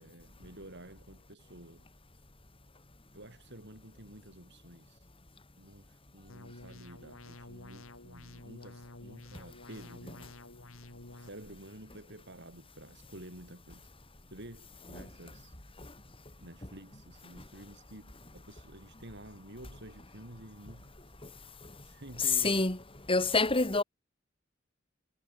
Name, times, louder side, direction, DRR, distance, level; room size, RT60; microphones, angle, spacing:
voice 1, 0.0-1.9 3.1-5.1 5.6-10.4 11.1-13.9 14.3-15.6 16.4-21.1 21.5-22.7, right 1 dB, 60° right, 7.7 m, -51 dB
sound 1, 6.3-11.3, left 2 dB, 80° left, 3.5 m, -50 dB
voice 2, 22.3-22.8 23.1-23.8, left 3 dB, 25° left, 3.4 m, -26 dB
head